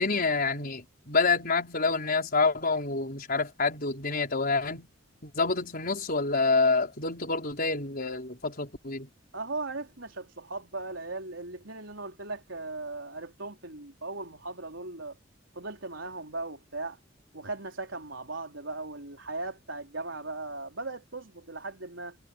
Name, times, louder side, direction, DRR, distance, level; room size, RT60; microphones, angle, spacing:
voice 1, 0.0-4.9 5.2-9.1, left 3 dB, 50° left, 5.3 m, -27 dB
voice 2, 9.3-15.1 15.5-17.0 17.3-22.2, right 3 dB, 80° right, 4.4 m, -38 dB
head